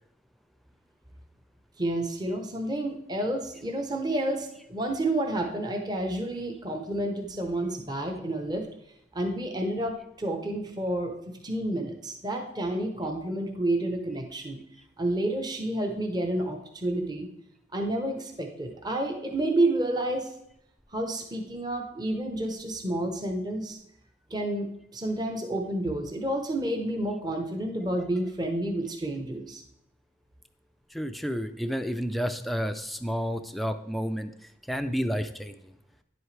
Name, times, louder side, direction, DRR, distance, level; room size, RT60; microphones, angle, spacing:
voice 1, 1.8-8.7 9.1-11.1 11.4-14.6 15.0-17.3 17.7-20.3 20.9-23.8 24.3-29.6, right 1 dB, 20° right, 3 dB, 0.9 m, -30 dB
voice 2, 30.9-34.3 34.7-35.6, equal, ahead, 7 dB, 0.4 m, -30 dB
10.0 x 7.9 x 3.3 m, 0.78 s
head